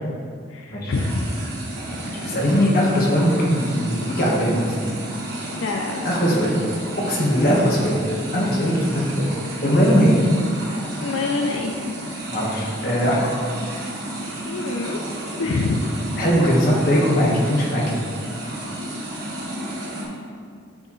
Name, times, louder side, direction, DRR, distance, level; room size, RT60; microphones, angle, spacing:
voice 1, 0.5-1.3 5.6-6.4 11.0-11.7 14.5-15.0 15.4-15.8 18.4-18.5, left 3 dB, 90° left, 1 dB, 0.4 m, -26 dB
sound 1, 0.9-20.1, right 1 dB, 55° right, 1.5 m, -32 dB
voice 2, 2.0-4.8 6.0-6.5 7.1-8.0 8.3-9.2 9.6-10.2 12.3-13.3 16.2-18.0, equal, 50° left, -4 dB, 1.4 m, -20 dB
9.3 x 4.3 x 3.2 m, 2.1 s
head